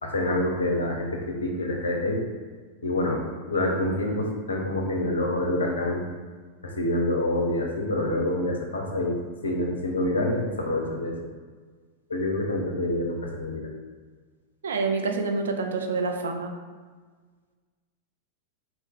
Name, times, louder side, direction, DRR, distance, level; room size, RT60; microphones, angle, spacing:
voice 1, 0.0-2.2 2.8-3.2 3.5-6.0 6.6-9.2 9.4-11.1 12.1-13.7, left 1 dB, 70° left, 1 dB, 0.4 m, -27 dB
voice 2, 14.6-16.5, right 4 dB, 65° right, 4 dB, 0.3 m, -27 dB
2.6 x 2.0 x 3.5 m, 1.5 s
figure-of-eight pair, 90°, 0 cm